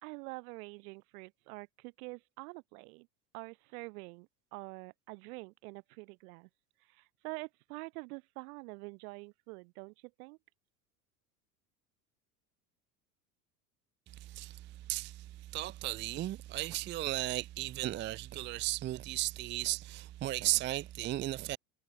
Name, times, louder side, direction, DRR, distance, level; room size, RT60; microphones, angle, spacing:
voice 1, 0.0-3.1 3.3-6.5 6.8-10.4, right 28 dB, 65° right, 1.8 m, -46 dB
voice 2, 14.2-21.6, right 17 dB, 25° right, 0.5 m, -35 dB
hypercardioid pair, 80°, 48 cm